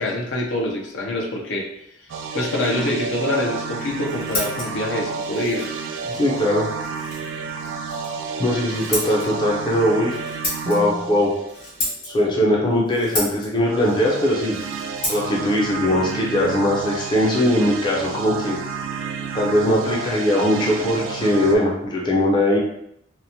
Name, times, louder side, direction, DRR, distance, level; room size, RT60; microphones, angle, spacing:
voice 1, 0.0-1.7 2.3-5.7, left 1 dB, 70° left, -1 dB, 0.6 m, -25 dB
sound 1, 2.1-12.1 13.6-21.6, right 5 dB, 70° right, 0.3 m, -31 dB
Scissors, 3.7-17.3, left 2 dB, 45° left, 1.0 m, -34 dB
voice 2, 6.1-6.7 8.4-10.2 10.7-11.3 12.1-14.6 15.1-18.6 19.3-22.6, left 1 dB, 25° left, -3 dB, 0.5 m, -20 dB
2.9 x 2.0 x 2.7 m, 0.76 s
head